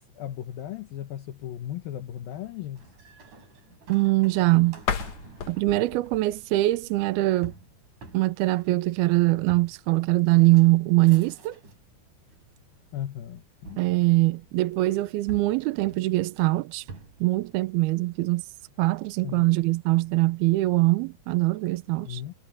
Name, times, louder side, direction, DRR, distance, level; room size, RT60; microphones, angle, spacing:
voice 1, 0.0-2.9 12.9-13.8 19.2-19.5 22.0-22.3, left 11 dB, 65° left, 2.8 m, -36 dB
sound 1, 2.7-11.9 12.3-12.9 13.7-14.7 15.3-17.3, right 4 dB, 50° right, 6.1 m, -48 dB
voice 2, 3.9-4.8 5.5-7.5 8.1-11.6 13.8-16.9 17.2-18.5 18.8-22.2, right 19 dB, 80° right, 2.5 m, -22 dB
sound 2, 4.8-7.6, left 7 dB, 50° left, 2.4 m, -35 dB
omnidirectional pair, 4.9 m